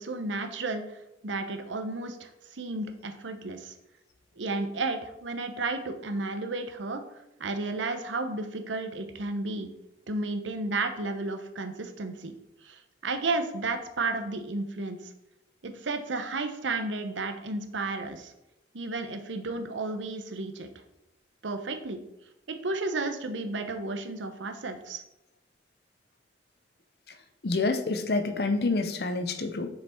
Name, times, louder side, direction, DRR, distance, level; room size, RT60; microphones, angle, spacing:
voice 1, 0.0-3.7 4.4-9.7 10.1-12.4 12.6-15.1 15.6-18.3 18.7-20.7 21.4-22.0 22.6-25.0, right 3 dB, 90° right, 6 dB, 0.8 m, -33 dB
voice 2, 27.4-29.7, left 3 dB, 55° left, 8 dB, 0.7 m, -27 dB
6.1 x 5.0 x 4.3 m, 0.87 s
head